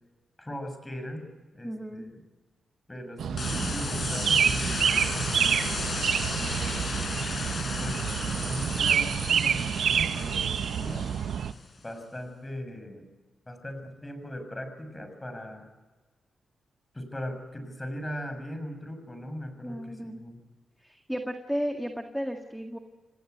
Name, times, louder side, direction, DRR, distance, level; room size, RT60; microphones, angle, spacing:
voice 1, 0.4-1.2 1.5-2.2 2.9-5.6 6.4-6.9 7.8-11.1 11.8-13.1 13.5-15.7 16.9-20.4, equal, 15° left, 7 dB, 6.8 m, -39 dB
voice 2, 1.6-2.0 19.6-20.2 20.8-22.8, equal, ahead, 4 dB, 2.0 m, -33 dB
sound 1, 3.2-11.5, right 8 dB, 85° right, 0.8 m, -27 dB
sound 2, 3.4-11.6, left 4 dB, 50° left, 5.5 m, -34 dB
28.0 x 18.0 x 8.1 m, 1.3 s
cardioid pair, 80°, 0 cm